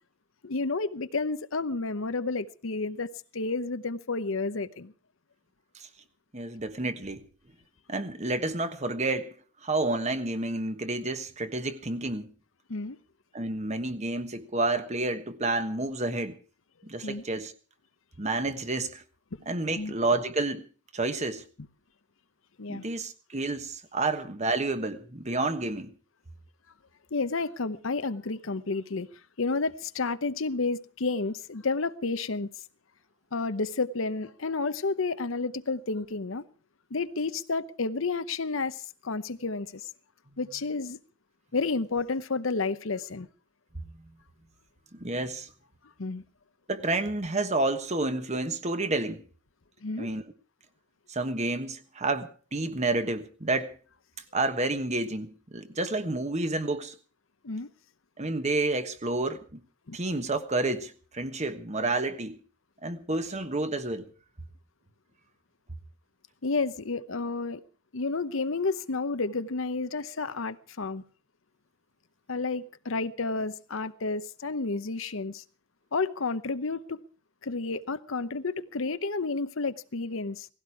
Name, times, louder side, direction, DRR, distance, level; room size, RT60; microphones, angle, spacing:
voice 1, 0.4-4.9 12.7-13.0 17.0-17.2 19.8-19.9 22.6-22.8 27.1-29.1 29.4-32.5 33.3-36.4 36.9-39.9 40.4-41.0 41.5-43.3 46.0-46.2 49.8-50.1 57.4-57.7 59.9-60.0 66.4-67.6 67.9-71.0 72.3-75.4 75.9-77.0 77.4-80.5, left 3 dB, 70° left, 0.9 m, -31 dB
voice 2, 6.3-7.2 7.9-9.4 9.6-12.3 13.3-16.4 16.8-17.5 18.2-19.0 19.5-20.7 20.9-21.4 22.7-25.9 44.9-45.5 46.7-49.2 50.0-50.2 51.1-53.7 54.3-57.0 58.2-59.6 59.9-62.4 62.8-64.1, right 2 dB, 35° right, 1.3 m, -30 dB
18.0 x 16.0 x 4.8 m
head